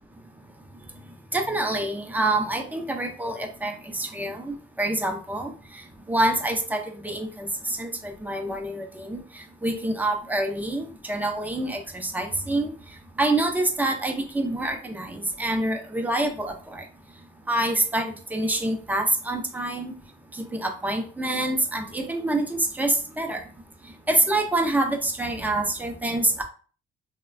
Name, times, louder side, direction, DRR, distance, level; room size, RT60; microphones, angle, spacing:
voice 1, 1.3-5.8 6.1-12.7 13.2-16.8 17.5-19.9 20.3-23.4 24.1-26.4, right 1 dB, 10° right, 4 dB, 0.5 m, -26 dB
3.0 x 2.1 x 2.5 m, 0.39 s
cardioid pair, 90°, 20 cm